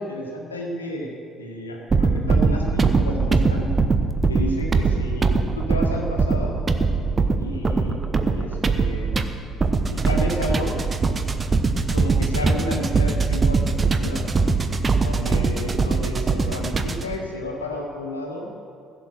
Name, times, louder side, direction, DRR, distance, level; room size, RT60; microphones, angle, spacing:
voice 1, 0.0-3.7 4.3-6.6 7.4-9.3 9.9-10.8 11.9-14.4 15.0-18.5, left 1 dB, 85° left, 0 dB, 1.7 m, -31 dB
broken beat, 1.9-17.2, right 4 dB, 30° right, 0.9 m, -21 dB
15.5 x 7.7 x 6.5 m, 2.5 s
figure-of-eight pair, 50°, 0 cm